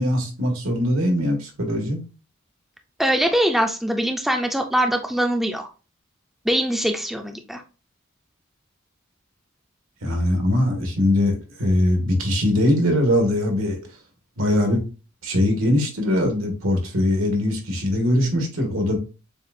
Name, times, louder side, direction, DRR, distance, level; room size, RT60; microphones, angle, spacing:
voice 1, 0.0-2.0 10.0-13.8 14.4-14.8 15.2-19.0, left 1 dB, 80° right, 1.5 m, -21 dB
voice 2, 3.0-5.7 6.5-7.6, equal, ahead, 0.4 m, -22 dB
7.0 x 2.4 x 2.5 m
head